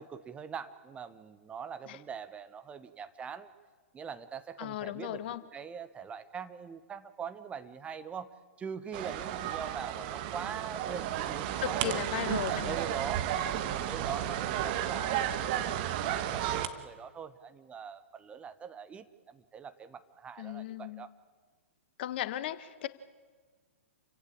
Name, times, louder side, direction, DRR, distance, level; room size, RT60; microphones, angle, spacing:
voice 1, 0.0-3.5 3.9-8.3 8.6-12.1 12.4-13.3 13.6-15.8 16.1-21.1, right 7 dB, 15° right, 11 dB, 1.1 m, -42 dB
voice 2, 4.6-5.4 11.6-12.8 20.4-21.1 22.0-22.9, left 12 dB, 50° left, 14 dB, 1.3 m, -36 dB
sound 1, 8.9-16.7, right 11 dB, 40° right, 1.5 m, -33 dB
28.5 x 16.0 x 8.7 m, 1.4 s
figure-of-eight pair, 110°, 7 cm